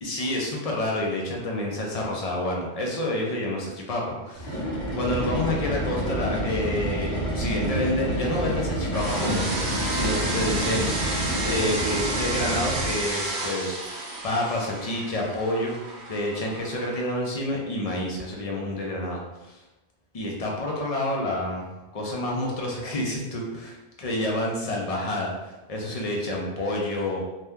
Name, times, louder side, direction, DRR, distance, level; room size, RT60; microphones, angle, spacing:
voice 1, 0.0-4.6 4.9-10.9 11.4-19.6 20.1-23.4 24.0-27.2, left 1 dB, 45° left, -2 dB, 0.5 m, -28 dB
sound 1, 4.3-13.1, right 1 dB, 70° left, 1.1 m, -29 dB
sound 2, 8.9-17.0, right 2 dB, 80° right, 0.9 m, -31 dB
2.7 x 2.2 x 3.4 m, 1.1 s
omnidirectional pair, 1.1 m